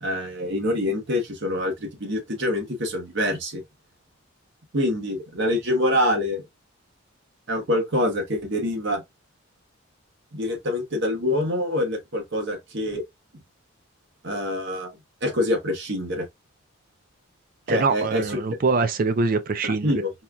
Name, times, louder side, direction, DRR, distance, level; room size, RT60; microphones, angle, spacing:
voice 1, 0.0-3.6 4.7-6.4 7.5-9.0 10.3-13.0 14.2-14.9 15.2-16.3 17.7-18.4 19.6-20.1, left 1 dB, 60° right, 1.1 m, -25 dB
voice 2, 17.7-19.9, right 4 dB, 40° right, 0.4 m, -24 dB
4.2 x 2.3 x 2.4 m
head